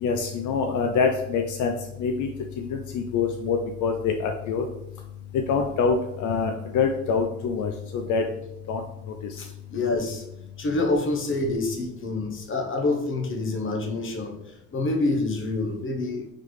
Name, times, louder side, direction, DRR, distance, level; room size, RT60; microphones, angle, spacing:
voice 1, 0.0-2.3 2.6-4.7 5.3-8.2 8.7-9.4, left 5 dB, 75° left, 4 dB, 0.5 m, -26 dB
voice 2, 9.4-10.2 10.6-16.3, left 2 dB, 45° left, 3 dB, 0.9 m, -27 dB
3.9 x 3.2 x 3.1 m, 0.83 s
cardioid pair, 90°, 30 cm